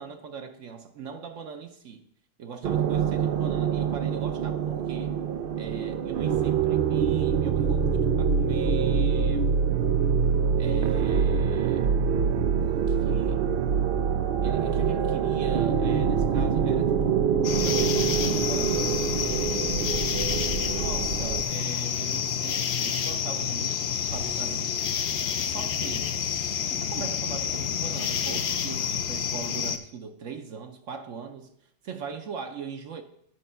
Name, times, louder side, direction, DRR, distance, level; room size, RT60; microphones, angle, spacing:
voice 1, 0.0-2.0 2.4-5.1 5.6-9.5 10.6-12.0 12.6-13.5 14.4-18.8 20.1-23.8 24.1-24.8 25.4-26.1 26.6-31.5 31.8-33.0, right 6 dB, 60° right, 7 dB, 0.9 m, -40 dB
sound 1, 2.6-21.4, right 7 dB, 85° right, 0.4 m, -25 dB
sound 2, 17.4-29.8, left 8 dB, 60° left, 0.7 m, -29 dB
8.5 x 5.8 x 5.5 m, 0.71 s
omnidirectional pair, 1.7 m